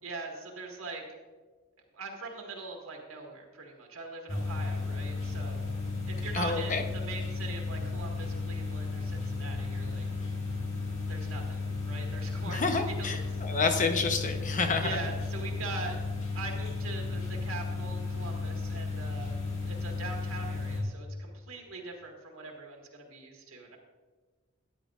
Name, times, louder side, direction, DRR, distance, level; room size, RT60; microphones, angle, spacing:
voice 1, 0.0-1.0 1.9-5.7 6.1-10.1 10.8-13.4 14.8-16.0 16.3-19.4 19.7-23.8, right 3 dB, 90° right, 1 dB, 1.8 m, -42 dB
sound 1, 4.3-20.8, left 3 dB, 70° left, 2.1 m, -34 dB
voice 2, 6.3-6.8 12.5-15.0, left 4 dB, 40° left, 6 dB, 0.9 m, -29 dB
13.0 x 10.0 x 2.5 m, 1.4 s
head